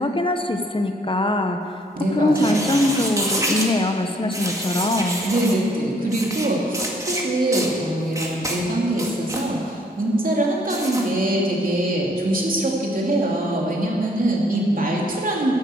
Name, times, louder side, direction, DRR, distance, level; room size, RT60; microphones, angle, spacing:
voice 1, 0.0-1.8 2.1-5.3, left 1 dB, 30° left, 5 dB, 1.0 m, -22 dB
voice 2, 1.9-2.9 5.2-15.5, right 1 dB, 60° right, -3 dB, 2.9 m, -23 dB
sound 1, 2.3-3.7 4.3-5.6 6.1-6.5 6.7-7.2 7.5-7.7 8.1-8.6 8.9-9.5 10.7-11.0, right 1 dB, 20° right, 2.1 m, -28 dB
13.0 x 10.5 x 7.8 m, 2.4 s
wide cardioid pair, 85°, 16 cm